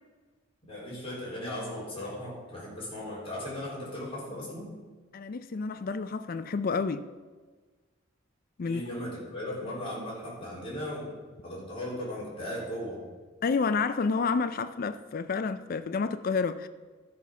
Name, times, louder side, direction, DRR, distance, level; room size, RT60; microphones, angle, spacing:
voice 1, 0.7-4.7 8.7-11.1 11.4-13.0, left 1 dB, 30° left, 3.6 m, -37 dB
voice 2, 5.1-7.1 8.6-8.8 13.4-16.7, left 4 dB, 45° left, 0.4 m, -29 dB
13.0 x 5.7 x 6.0 m
head